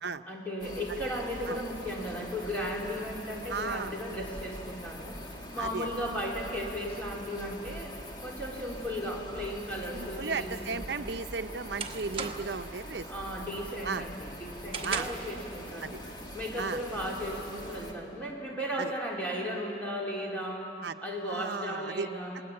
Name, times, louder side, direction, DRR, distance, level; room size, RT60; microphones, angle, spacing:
voice 1, 0.3-10.8 13.1-16.0 16.3-20.7 21.0-22.4, equal, 10° left, -4 dB, 4.1 m, -36 dB
sound 1, 0.6-17.9, equal, 25° left, 2.3 m, -43 dB
voice 2, 3.5-4.0 5.6-5.9 9.9-13.1 13.8-14.0 14.8-15.1 15.8-16.0 16.6-16.8 18.8-18.9 20.8-20.9 21.3-22.1, right 4 dB, 75° right, 9 dB, 0.7 m, -35 dB
sound 2, 11.7-12.7 13.1-13.4 13.8-15.4, right 5 dB, 30° right, 1.3 m, -38 dB
29.5 x 20.5 x 8.7 m, 2.8 s
head